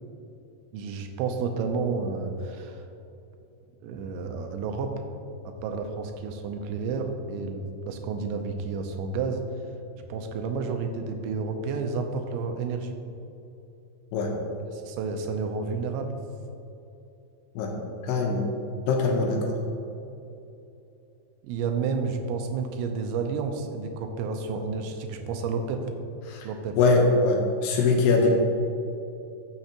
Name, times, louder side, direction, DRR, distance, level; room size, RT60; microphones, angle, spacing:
voice 1, 0.7-2.9 3.8-4.9 5.4-9.4 10.1-13.0 14.7-16.2 21.4-25.9 26.4-26.8, right 4 dB, 90° right, 5 dB, 3.0 m, -31 dB
voice 2, 18.0-18.4 18.9-19.6 26.3-26.5 26.8-28.3, left 3 dB, 75° left, 1 dB, 2.7 m, -22 dB
12.5 x 6.6 x 2.9 m, 2.8 s
omnidirectional pair, 5.1 m